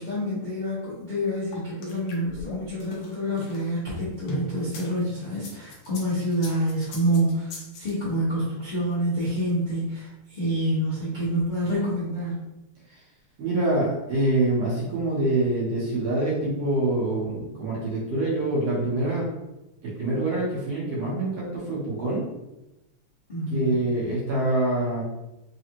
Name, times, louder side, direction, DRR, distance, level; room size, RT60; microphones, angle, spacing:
voice 1, 0.0-12.4 23.3-23.8, equal, 55° left, -10 dB, 0.5 m, -27 dB
sound 1, 1.5-4.9 5.3-7.9, left 1 dB, 85° left, 1.2 m, -38 dB
voice 2, 13.4-19.3 19.8-22.2 23.5-25.0, right 2 dB, 60° right, -6 dB, 2.1 m, -25 dB
5.0 x 2.4 x 2.9 m, 0.95 s
omnidirectional pair, 3.4 m